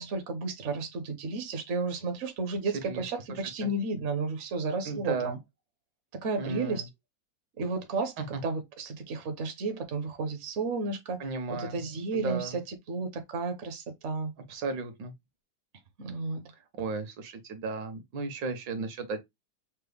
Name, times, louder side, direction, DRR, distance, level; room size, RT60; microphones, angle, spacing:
voice 1, 0.0-5.4 6.2-6.9 7.6-8.1 8.4-11.2 11.5-14.3 16.0-16.4, right 3 dB, 55° right, 0.8 m, -32 dB
voice 2, 4.8-5.4 6.4-6.8 8.2-8.4 11.2-11.8 12.1-12.6 14.5-15.1 16.7-19.2, right 3 dB, 75° right, 1.7 m, -34 dB
5.9 x 2.1 x 3.4 m
omnidirectional pair, 2.0 m